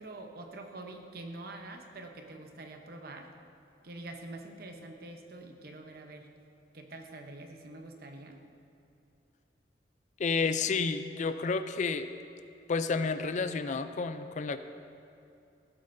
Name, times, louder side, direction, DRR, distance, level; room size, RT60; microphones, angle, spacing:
voice 1, 0.0-3.3 3.8-6.3 6.7-8.4, right 2 dB, 60° right, 4 dB, 0.9 m, -45 dB
voice 2, 10.2-12.1 12.7-14.6, left 4 dB, 45° left, 10 dB, 0.4 m, -30 dB
15.5 x 8.5 x 2.7 m, 2.7 s
head